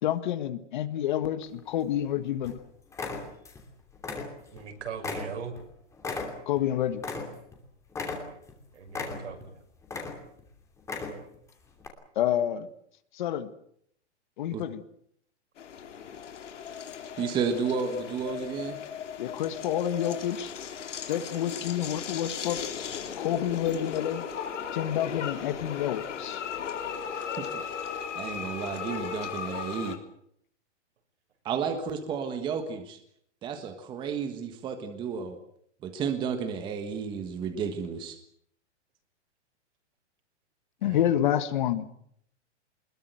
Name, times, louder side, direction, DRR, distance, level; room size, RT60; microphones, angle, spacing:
voice 1, 0.0-2.6 6.5-7.0 12.1-12.7 13.1-13.5 14.4-14.8 19.2-20.5 21.1-22.6 23.2-24.2 24.7-26.4 27.1-27.3 40.8-41.9, left 11 dB, 40° left, 12 dB, 1.7 m, -28 dB
sound 1, 1.4-2.1 2.4-2.6 2.9-3.7 3.9-4.7 5.0-7.6 7.9-8.5 8.9-9.5 9.8-10.4 10.8-11.4 11.8-11.9, left 4 dB, 10° left, 2.8 m, -36 dB
voice 2, 4.5-5.5 8.7-9.5 40.8-41.1, right 6 dB, 70° right, 5 dB, 6.8 m, -39 dB
sound 2, 15.6-30.0, left 7 dB, 85° left, 4.0 m, -37 dB
voice 3, 17.2-18.8 27.4-27.6 28.1-30.0 31.4-33.0 33.4-35.4 35.8-38.2, right 6 dB, 15° right, 7 dB, 1.4 m, -32 dB
23.0 x 21.5 x 7.9 m, 0.68 s
hypercardioid pair, 170°, 35 cm